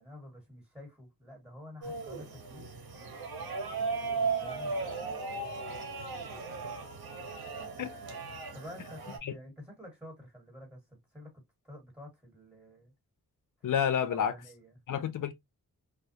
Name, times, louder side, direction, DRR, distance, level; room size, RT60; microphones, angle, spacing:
voice 1, 0.0-2.7 4.1-5.1 8.5-12.9 13.6-13.7 14.1-14.8, left 1 dB, 5° right, 1.5 m, -49 dB
sound 1, 1.8-9.2, right 4 dB, 80° right, 0.8 m, -36 dB
voice 2, 13.6-14.3 14.9-15.3, left 8 dB, 60° left, 0.5 m, -29 dB
2.3 x 2.0 x 2.7 m
cardioid pair, 75°, 37 cm